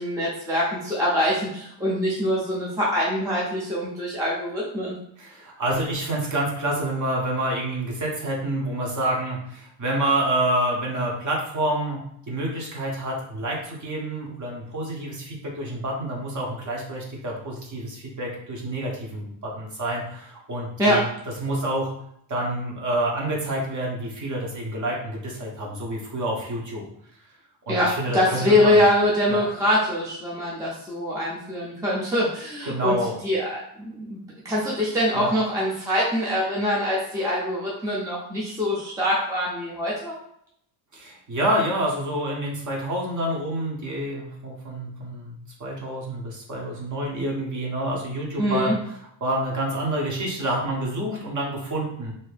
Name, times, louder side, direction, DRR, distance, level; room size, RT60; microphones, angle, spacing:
voice 1, 0.0-5.0 20.8-21.0 27.7-33.0 33.2-40.1 48.4-48.8, left 1 dB, 5° right, -5 dB, 0.4 m, -24 dB
voice 2, 5.2-21.0 21.4-21.9 22.3-26.8 27.7-28.8 29.3-29.4 32.7-33.2 35.1-35.3 40.9-48.7 49.2-52.1, right 1 dB, 40° right, -2 dB, 0.8 m, -28 dB
2.7 x 2.6 x 3.2 m, 0.71 s
cardioid pair, 170°, 49 cm